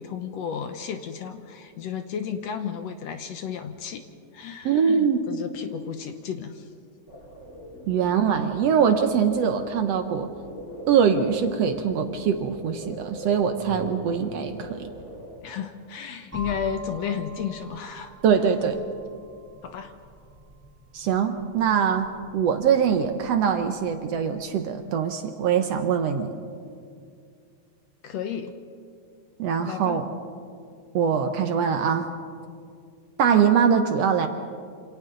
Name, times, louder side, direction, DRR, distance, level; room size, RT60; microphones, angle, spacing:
voice 1, 0.0-4.0 4.3-6.7 15.4-18.1 19.6-19.9 28.0-28.5 29.6-30.0, left 7 dB, 70° left, 7 dB, 1.8 m, -33 dB
voice 2, 4.7-5.2 7.9-10.3 10.9-14.9 18.2-18.8 20.9-22.1 22.3-26.3 29.4-30.1 30.9-32.1 33.2-34.3, right 7 dB, 65° right, 7 dB, 1.8 m, -23 dB
sound 1, 7.1-15.4, equal, 40° left, 4.6 m, -41 dB
sound 2, 16.3-24.1, right 1 dB, 5° right, 6.9 m, -45 dB
27.5 x 27.0 x 3.9 m, 2.3 s
omnidirectional pair, 3.5 m